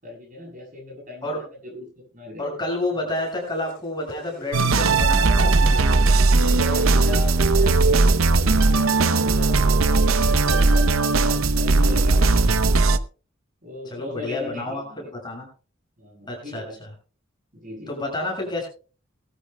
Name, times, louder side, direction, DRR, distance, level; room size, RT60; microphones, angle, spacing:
voice 1, 0.0-2.4 6.4-8.1 8.6-10.8 11.1-12.7 13.6-15.1 16.0-16.8 17.5-17.9, left 2 dB, 40° right, 0 dB, 7.5 m, -38 dB
voice 2, 2.4-5.7 13.8-15.5 16.3-16.9 17.9-18.7, left 1 dB, 20° left, -1 dB, 6.6 m, -29 dB
Reversed Reverby Broken Printer, 3.1-11.4, left 1 dB, 45° left, 7.4 m, -47 dB
sound 1, 4.5-13.0, right 3 dB, 75° right, 0.8 m, -18 dB
20.5 x 13.0 x 2.2 m, 0.36 s
head